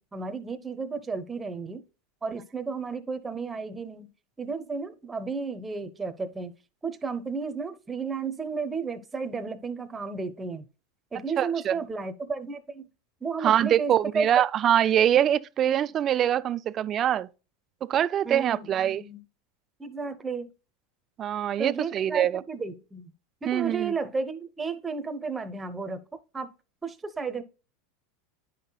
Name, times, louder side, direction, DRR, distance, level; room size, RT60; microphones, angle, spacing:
voice 1, 0.1-1.8 2.2-4.1 4.4-6.5 6.8-10.6 11.1-12.9 13.2-14.4 18.2-19.2 19.8-20.5 21.6-23.1 23.4-26.5 26.8-27.4, right 4 dB, 15° right, 0.7 m, -33 dB
voice 2, 11.4-11.7 13.4-17.3 17.9-19.0 21.2-22.4 23.5-23.9, right 10 dB, 35° right, 0.3 m, -24 dB
10.0 x 5.6 x 2.3 m
supercardioid pair, 115°, 0 cm